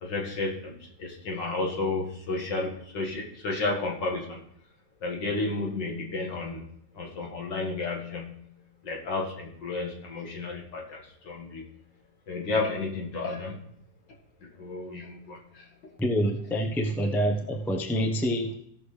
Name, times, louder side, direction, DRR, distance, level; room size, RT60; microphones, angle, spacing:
voice 1, 0.0-4.4 5.0-6.6 6.9-8.3 8.8-11.7 12.3-13.7 14.4-15.9, left 3 dB, 70° left, 0 dB, 2.5 m, -32 dB
voice 2, 16.0-18.5, equal, ahead, 2 dB, 0.4 m, -26 dB
17.0 x 6.4 x 3.3 m, 0.71 s
omnidirectional pair, 2.1 m